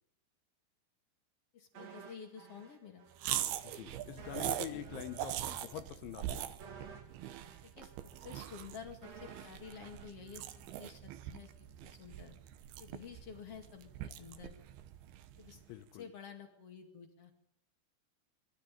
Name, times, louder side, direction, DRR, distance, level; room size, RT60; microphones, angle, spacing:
voice 1, 1.5-3.0 4.3-4.4 4.7-4.8 7.6-7.9 8.2-12.3 12.8-14.6 15.4-15.6 15.9-17.3, left 7 dB, 45° left, 4 dB, 2.3 m, -51 dB
sound 1, 1.7-3.4 3.6-3.8 4.2-11.2 11.5-11.7, right 5 dB, 50° right, 2.4 m, -55 dB
sound 2, 3.2-15.7, right 12 dB, 75° right, 2.6 m, -42 dB
voice 2, 3.6-6.5 15.7-16.1, left 14 dB, 85° left, 11 dB, 3.4 m, -45 dB
21.5 x 13.5 x 9.0 m, 0.78 s
omnidirectional pair, 5.3 m